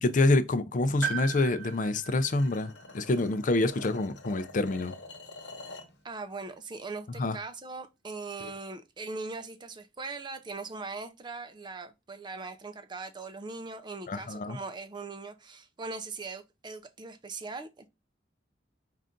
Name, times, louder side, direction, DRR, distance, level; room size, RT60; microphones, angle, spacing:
voice 1, 0.0-4.9 7.2-7.4 14.1-14.6, left 2 dB, 45° left, 0.5 m, -27 dB
Piano, 1.0-4.9 5.2-5.3 6.4-6.5, right 7 dB, 85° right, 0.9 m, -39 dB
sound 1, 1.6-6.0, left 3 dB, 65° left, 1.0 m, -47 dB
voice 2, 6.0-17.9, right 3 dB, 25° right, 0.5 m, -40 dB
5.5 x 2.5 x 3.6 m
head